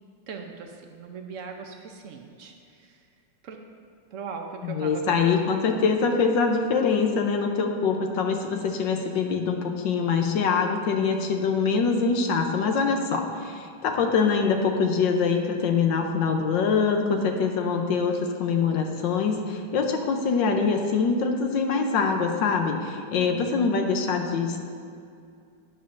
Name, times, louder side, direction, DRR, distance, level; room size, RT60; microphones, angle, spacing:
voice 1, 0.3-3.0 3.4-3.6 4.1-5.6 23.1-23.6, right 5 dB, 75° right, 3 dB, 0.7 m, -39 dB
voice 2, 4.6-24.6, left 5 dB, 70° left, 3 dB, 1.4 m, -24 dB
11.5 x 10.5 x 2.6 m, 2.3 s
omnidirectional pair, 2.2 m